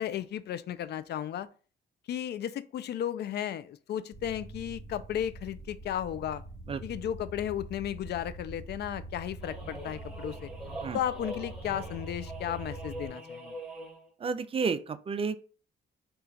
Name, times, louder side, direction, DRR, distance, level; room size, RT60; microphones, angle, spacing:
voice 1, 0.0-1.5 2.1-6.4 6.8-10.5 10.9-13.6, left 10 dB, 55° left, 0.4 m, -34 dB
sound 1, 4.1-13.1, right 2 dB, 35° left, 1.1 m, -44 dB
sound 2, 9.4-14.1, right 1 dB, ahead, 1.2 m, -43 dB
voice 2, 14.2-15.4, right 5 dB, 30° right, 0.4 m, -31 dB
4.3 x 2.4 x 3.9 m
cardioid pair, 90°, 20 cm